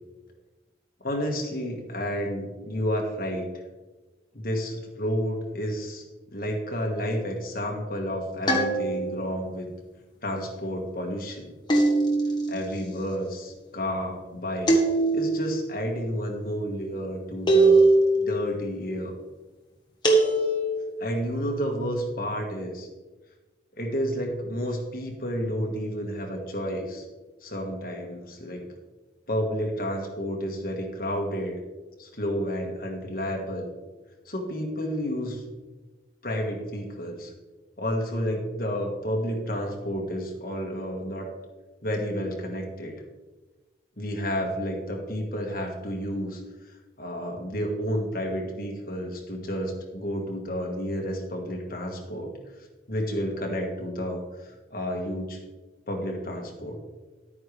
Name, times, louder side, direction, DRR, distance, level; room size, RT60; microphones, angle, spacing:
voice 1, 1.0-3.4 4.4-6.0 6.3-9.7 10.2-11.4 12.5-14.7 15.1-17.8 18.2-19.2 21.0-22.9 23.8-27.0 27.4-28.6 29.3-31.6 32.0-33.7 34.3-35.4 36.2-37.3 37.8-41.3 41.8-42.9 44.0-46.4 47.0-52.3 52.9-54.2 54.7-55.4 55.9-56.8, equal, 50° left, 0 dB, 1.8 m, -30 dB
sound 1, 8.5-9.3 11.7-12.5 14.7-15.5 17.5-18.3 20.0-20.9, right 2 dB, 25° left, 1.5 m, -21 dB
11.0 x 9.2 x 3.4 m, 1.2 s
head